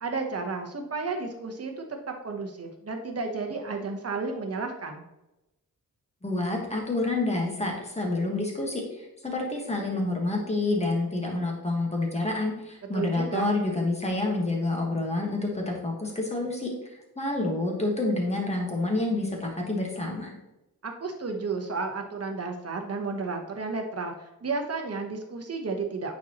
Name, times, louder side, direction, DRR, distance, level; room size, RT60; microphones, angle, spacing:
voice 1, 0.0-5.0 12.9-13.5 20.8-26.2, right 4 dB, 40° right, 3 dB, 0.9 m, -32 dB
voice 2, 6.2-16.7 17.2-20.3, left 2 dB, 20° left, 0 dB, 1.4 m, -28 dB
8.9 x 4.2 x 2.9 m, 0.95 s
wide cardioid pair, 160°, 36 cm